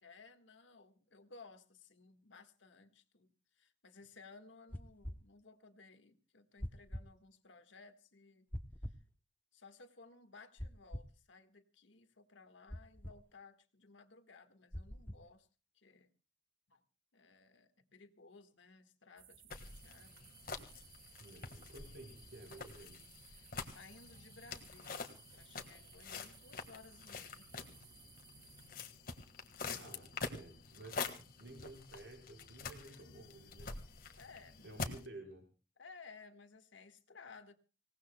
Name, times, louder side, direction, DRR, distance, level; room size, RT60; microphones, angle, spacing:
voice 1, 0.0-8.5 8.8-9.0 9.5-15.5 15.7-16.1 16.7-16.8 17.1-20.3 21.8-21.9 23.3-27.5 34.2-34.8 35.8-37.5, left 4 dB, 80° left, 9 dB, 1.6 m, -59 dB
sound 1, 4.7-5.2 6.6-7.1 8.5-9.0 10.6-11.1 12.7-13.2 14.7-15.2, equal, 10° left, 0.8 m, -44 dB
sound 2, 19.2-28.7, right 8 dB, 50° right, 1.6 m, -61 dB
sound 3, 19.5-35.1, left 4 dB, 50° left, 1.6 m, -47 dB
voice 2, 21.2-23.1 29.7-33.8 34.6-35.5, right 2 dB, 75° right, 3 dB, 4.8 m, -53 dB
26.5 x 18.0 x 2.2 m, 0.31 s
head